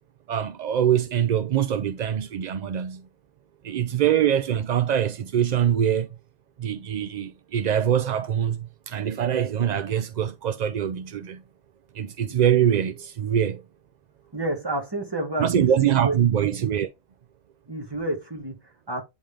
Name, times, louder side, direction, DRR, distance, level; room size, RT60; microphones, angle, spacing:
voice 1, 0.3-3.0 3.6-6.1 6.6-11.4 11.9-13.6 15.4-16.9, right 9 dB, 65° right, 0.4 m, -23 dB
voice 2, 14.3-15.7 16.0-16.2 17.7-19.0, right 1 dB, 20° right, 1.6 m, -30 dB
8.9 x 3.6 x 3.4 m
omnidirectional pair, 1.2 m